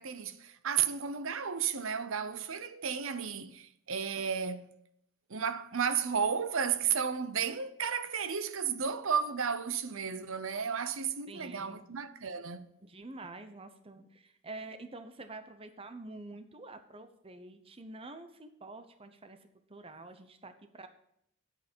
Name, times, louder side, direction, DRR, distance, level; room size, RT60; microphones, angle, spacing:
voice 1, 0.0-4.7 5.3-12.7, right 7 dB, 65° right, 0.7 m, -33 dB
voice 2, 11.3-11.8 12.8-19.4 19.7-20.9, right 2 dB, 25° right, 0.7 m, -47 dB
10.0 x 8.6 x 4.5 m
head